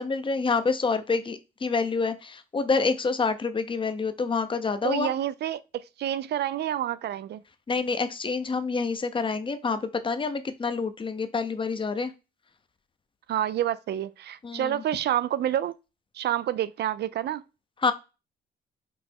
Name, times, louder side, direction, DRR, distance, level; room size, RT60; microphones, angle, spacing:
voice 1, 0.0-5.1 7.7-12.1 14.4-14.8 17.8-17.9, left 4 dB, 25° left, 0.6 m, -27 dB
voice 2, 4.8-7.4 13.3-15.7 16.1-17.4, right 11 dB, 55° right, 0.4 m, -28 dB
5.4 x 2.0 x 4.3 m
cardioid pair, 90°, 20 cm